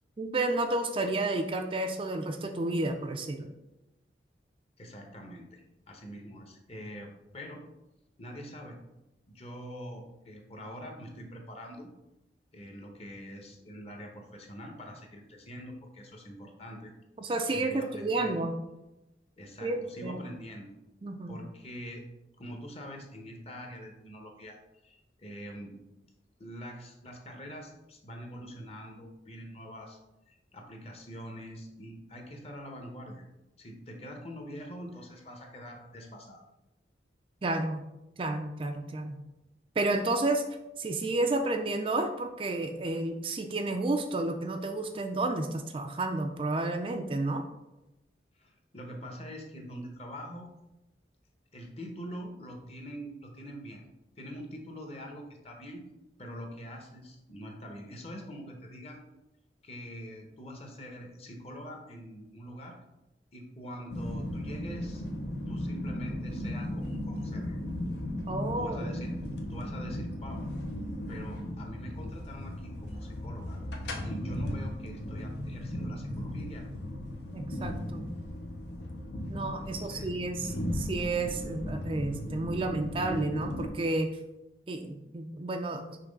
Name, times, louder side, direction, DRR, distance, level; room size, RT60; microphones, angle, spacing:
voice 1, 0.2-3.5 17.2-18.6 19.6-20.2 21.0-21.4 37.4-37.8 38.2-39.2 39.8-40.4 40.8-47.4 68.3-69.0 77.3-78.1 79.3-84.2 84.7-86.0, right 2 dB, 30° right, 5 dB, 0.4 m, -31 dB
voice 2, 4.8-7.6 8.2-8.8 9.3-11.9 12.5-16.9 17.5-18.4 19.4-20.7 21.3-22.1 22.4-24.6 24.8-25.8 26.4-30.0 30.3-33.2 33.6-36.4 48.4-50.5 51.5-53.8 54.2-55.8 56.2-59.0 59.6-62.8 63.3-65.0 65.5-67.6 68.6-70.4 71.1-76.7 79.6-80.1 80.4-80.7, equal, 35° left, 2 dB, 1.0 m, -44 dB
sound 1, 63.9-83.7, left 1 dB, 75° left, 0.9 m, -36 dB
5.9 x 3.1 x 5.2 m, 0.94 s
head